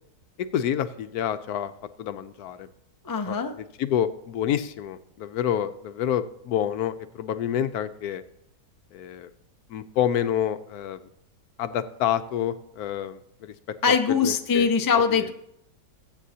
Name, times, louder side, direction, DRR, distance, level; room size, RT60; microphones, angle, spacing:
voice 1, 0.4-1.7 2.0-2.7 3.3-8.2 8.9-9.3 9.7-11.0 11.6-13.5 13.9-14.7 14.9-15.3, left 10 dB, 75° left, 11 dB, 1.1 m, -28 dB
voice 2, 3.0-3.6 13.8-15.3, left 6 dB, 30° left, 5 dB, 0.3 m, -22 dB
20.0 x 8.4 x 2.8 m, 0.77 s
omnidirectional pair, 1.7 m